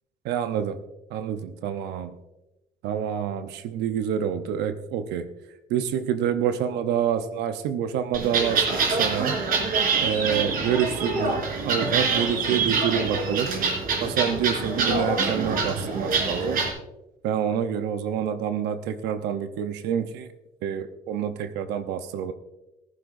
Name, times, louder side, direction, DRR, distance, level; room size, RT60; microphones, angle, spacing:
voice 1, 0.2-0.8 1.1-2.1 2.8-5.3 5.7-8.6 9.0-9.4 10.0-11.4 11.6-13.5 14.0-16.6 17.2-20.3 20.6-22.3, right 8 dB, 85° right, 9 dB, 0.8 m, -27 dB
sound 1, 8.1-16.7, right 4 dB, 60° right, 3.6 m, -25 dB
15.0 x 15.0 x 2.6 m, 0.96 s
cardioid pair, 110°, 17 cm